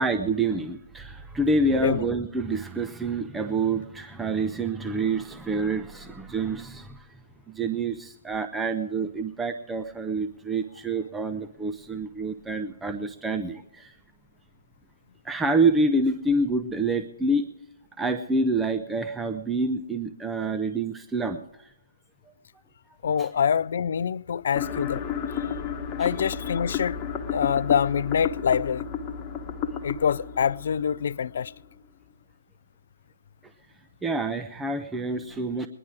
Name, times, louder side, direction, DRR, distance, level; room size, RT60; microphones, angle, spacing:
voice 1, 0.0-7.1 7.5-13.9 15.2-17.4 18.0-21.4 23.2-23.3 26.0-26.1 34.0-35.7, right 3 dB, 10° right, 0.6 m, -27 dB
voice 2, 1.7-2.0 23.0-25.0 26.0-27.0 27.3-28.9 29.8-31.5, left 7 dB, 60° left, 0.4 m, -25 dB
sound 1, 24.6-31.6, left 7 dB, 25° left, 1.2 m, -32 dB
20.5 x 11.0 x 4.8 m
figure-of-eight pair, 135°, 0 cm